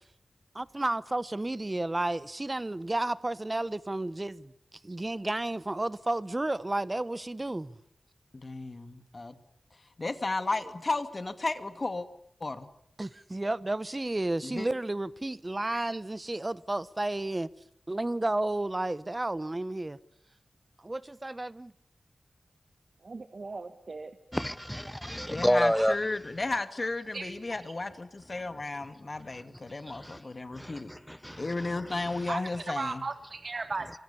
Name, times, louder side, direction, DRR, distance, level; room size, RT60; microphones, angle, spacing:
voice 1, 0.5-4.5 4.8-7.8 13.0-17.5 17.9-20.0 20.8-21.7, right 2 dB, 25° right, 1.1 m, -32 dB
voice 2, 8.3-9.4 10.0-12.1 12.4-12.7 14.4-14.7 25.3-30.9 31.4-33.0, left 2 dB, 40° left, 2.4 m, -34 dB
voice 3, 23.0-24.2 25.7-25.9 27.1-27.5 32.3-33.9, right 3 dB, 55° right, 1.6 m, -37 dB
voice 4, 24.3-26.0 29.3-29.4 29.9-30.2 30.5-32.3, equal, 5° left, 1.0 m, -30 dB
27.5 x 25.5 x 7.1 m
wide cardioid pair, 80°, 0 cm